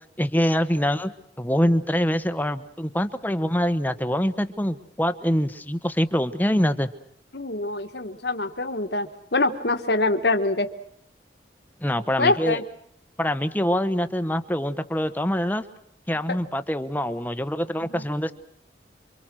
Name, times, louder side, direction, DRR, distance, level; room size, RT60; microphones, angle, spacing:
voice 1, 0.2-6.9 11.8-12.6 13.2-15.6 16.1-18.3, equal, 10° left, 10 dB, 1.0 m, -24 dB
voice 2, 7.3-10.7 12.2-12.6 16.3-16.4 17.9-18.0, left 2 dB, 60° left, 6 dB, 1.6 m, -24 dB
28.5 x 24.5 x 6.3 m, 0.69 s
head